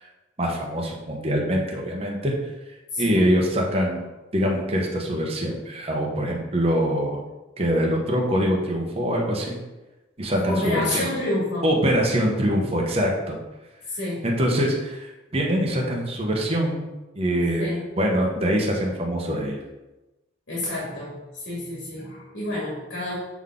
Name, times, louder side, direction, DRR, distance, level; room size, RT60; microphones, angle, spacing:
voice 1, 0.4-2.3 3.0-4.0 4.3-7.2 7.6-9.6 10.2-11.1 11.6-13.4 14.2-16.8 17.2-17.7 18.0-19.6, equal, 30° right, -1 dB, 0.9 m, -24 dB
voice 2, 2.9-3.3 10.5-11.7 13.9-14.3 17.6-17.9 20.5-23.1, left 2 dB, 75° left, -6 dB, 2.1 m, -29 dB
7.1 x 3.9 x 3.7 m, 1.1 s
head